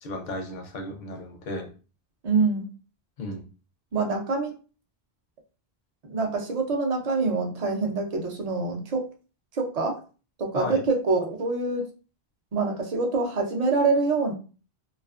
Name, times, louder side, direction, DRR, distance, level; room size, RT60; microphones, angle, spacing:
voice 1, 0.0-1.7 3.2-3.5 10.5-10.8, left 2 dB, 55° left, 5 dB, 0.6 m, -34 dB
voice 2, 2.2-2.7 3.9-4.5 6.1-9.0 9.5-10.0 10.4-11.8 12.5-14.3, right 3 dB, 45° right, 3 dB, 0.6 m, -25 dB
2.5 x 2.4 x 2.4 m, 0.36 s
omnidirectional pair, 1.0 m